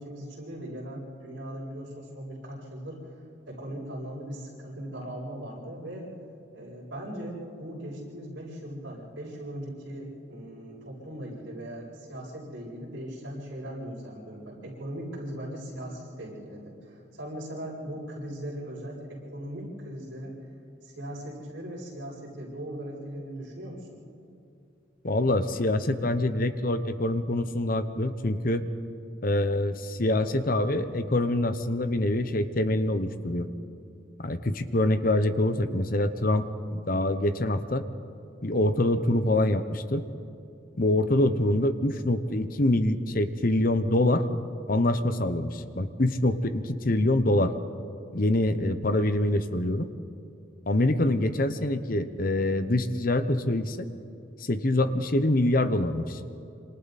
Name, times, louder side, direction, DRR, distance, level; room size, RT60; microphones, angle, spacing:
voice 1, 0.0-3.1 3.5-6.1 6.5-20.4 20.8-23.9, right 1 dB, 60° right, -8 dB, 7.5 m, -39 dB
voice 2, 25.0-28.6 29.2-33.5 34.2-36.4 36.7-37.8 38.4-40.0 40.8-44.3 44.7-47.5 48.1-49.9 50.7-53.8 54.4-56.2, left 1 dB, 45° left, 10 dB, 0.9 m, -25 dB
27.0 x 26.5 x 4.2 m, 2.7 s
head